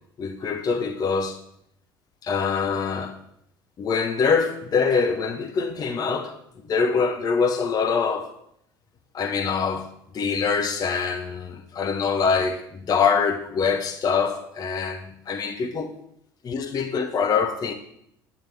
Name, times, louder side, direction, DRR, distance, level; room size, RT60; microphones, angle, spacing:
voice 1, 0.2-1.4 2.2-3.2 3.8-6.4 6.7-8.3 9.1-15.9 16.4-17.7, left 5 dB, 30° left, 0.7 m, -24 dB
9.1 x 8.9 x 3.3 m
figure-of-eight pair, 65°, 12 cm